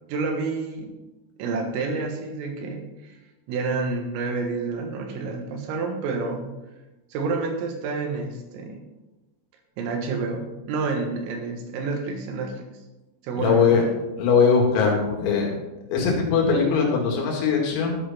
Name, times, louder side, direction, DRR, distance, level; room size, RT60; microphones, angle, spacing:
voice 1, 0.1-0.9 1.4-3.2 3.5-6.4 7.1-8.8 9.8-12.6 13.2-13.8, right 4 dB, 85° right, 3 dB, 4.1 m, -29 dB
voice 2, 13.4-13.8 14.2-15.5 15.9-18.0, left 5 dB, 85° left, -1 dB, 4.9 m, -20 dB
13.0 x 8.1 x 4.3 m, 1.0 s
omnidirectional pair, 5.9 m